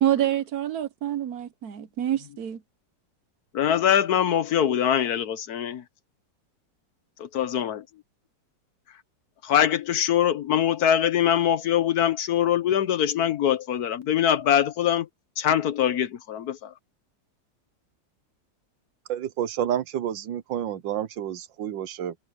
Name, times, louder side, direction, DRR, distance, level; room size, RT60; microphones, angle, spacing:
voice 1, 0.0-2.6, right 11 dB, 60° right, 1.3 m, -26 dB
voice 2, 3.5-5.8 7.2-7.8 9.4-15.1 15.4-16.7, left 10 dB, 65° left, 1.2 m, -23 dB
voice 3, 19.1-22.2, right 10 dB, 85° right, 1.7 m, -29 dB
omnidirectional pair, 2.0 m